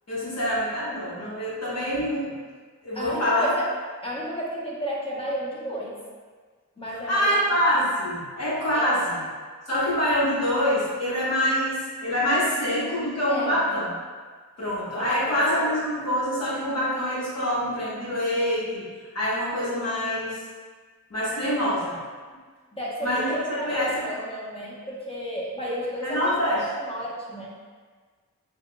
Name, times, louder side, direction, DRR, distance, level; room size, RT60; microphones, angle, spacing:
voice 1, 0.1-2.3 2.8-3.5 7.1-9.2 9.7-13.9 14.6-18.8 19.1-20.4 21.1-22.0 23.0-23.9 26.0-26.7, equal, 55° left, -8 dB, 1.2 m, -25 dB
voice 2, 2.9-3.7 4.0-6.0 6.8-7.3 8.7-9.1 13.3-13.6 15.0-15.7 22.7-27.5, equal, 15° left, -5 dB, 0.9 m, -32 dB
5.7 x 2.3 x 2.2 m, 1.5 s
wide cardioid pair, 85°, 31 cm